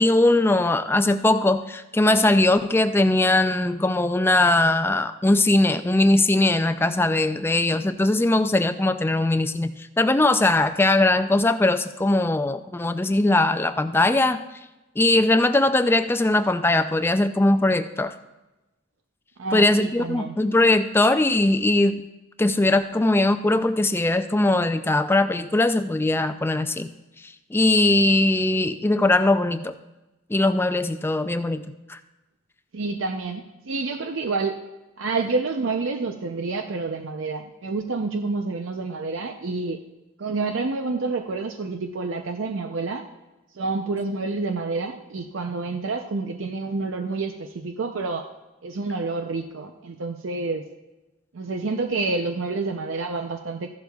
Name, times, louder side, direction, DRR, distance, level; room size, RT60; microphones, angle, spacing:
voice 1, 0.0-14.4 15.0-18.1 19.5-22.0 22.4-26.9 27.5-29.7 30.3-31.6 31.9-32.0, left 2 dB, 10° left, 10 dB, 0.4 m, -20 dB
voice 2, 19.4-20.4 32.7-34.6 35.0-39.8 40.2-43.0 43.5-48.3 48.6-50.6 51.3-53.7, right 3 dB, 80° right, 5 dB, 0.6 m, -28 dB
14.5 x 11.5 x 2.3 m, 1.0 s
head